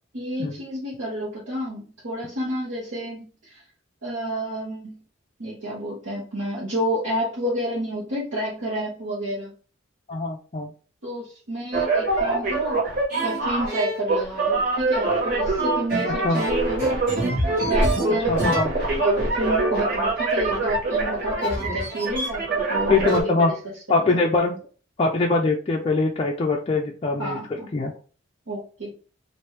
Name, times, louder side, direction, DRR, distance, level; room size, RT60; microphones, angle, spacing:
voice 1, 0.1-3.6 4.0-5.0 5.4-9.5 11.0-12.8 13.2-17.0 17.7-23.5 24.0-24.2 27.2-27.7 28.5-28.9, equal, 70° right, -7 dB, 1.1 m, -30 dB
voice 2, 10.1-10.7 16.2-16.4 18.3-18.7 22.9-23.5 23.9-24.6 25.0-27.4 27.7-27.9, left 3 dB, 30° left, 0 dB, 0.3 m, -22 dB
sound 1, 11.7-23.2, right 2 dB, 45° right, 1.4 m, -24 dB
3.0 x 2.5 x 3.2 m, 0.38 s
head